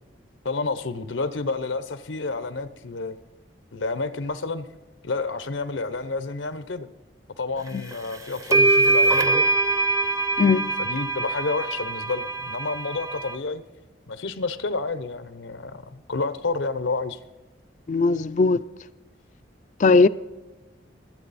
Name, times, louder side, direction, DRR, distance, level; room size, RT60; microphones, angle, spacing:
voice 1, 0.4-3.2 3.7-4.7 5.0-6.9 7.4-9.4 10.8-13.6 14.1-17.2, left 3 dB, 90° left, 0.7 m, -30 dB
sound 1, 7.9-8.0 8.5-13.3, right 2 dB, 15° right, 0.6 m, -23 dB
voice 2, 10.4-10.7 17.9-18.6 19.8-20.1, left 4 dB, 40° left, 0.3 m, -18 dB
24.0 x 8.4 x 4.1 m
head